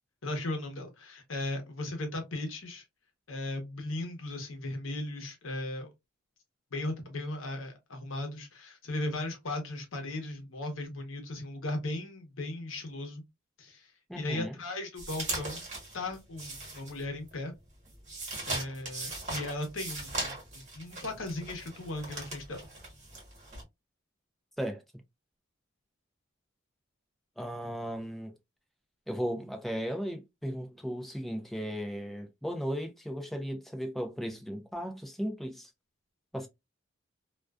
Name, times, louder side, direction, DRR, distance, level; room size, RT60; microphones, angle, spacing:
voice 1, 0.2-2.8 3.3-5.9 6.7-13.2 13.6-15.7 15.9-17.5 18.5-22.7, left 2 dB, 70° left, 0.8 m, -37 dB
voice 2, 14.1-14.6 24.6-24.8 27.4-28.3 29.1-35.7 36.3-36.5, equal, ahead, 0.4 m, -36 dB
sound 1, 15.0-17.3 17.7-23.6, right 2 dB, 35° right, 1.2 m, -39 dB
2.4 x 2.3 x 2.2 m
head